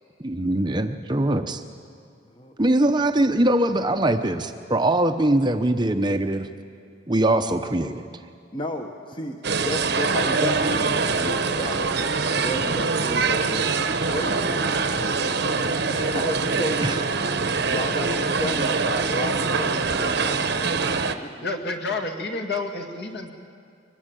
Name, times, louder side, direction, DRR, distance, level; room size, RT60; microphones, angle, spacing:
voice 1, 0.2-1.6 2.6-6.5 7.1-8.0 16.8-17.0, right 1 dB, 20° right, 7 dB, 0.7 m, -22 dB
voice 2, 8.5-10.9 11.2-12.1 12.4-15.3 15.9-17.0 17.7-20.5 20.8-21.4, left 1 dB, 25° left, 4 dB, 1.0 m, -33 dB
sound 1, 9.4-21.1, right 4 dB, 55° right, 0.9 m, -24 dB
voice 3, 21.4-23.3, left 3 dB, 55° left, 4 dB, 2.1 m, -30 dB
23.5 x 19.0 x 9.1 m, 2.3 s
head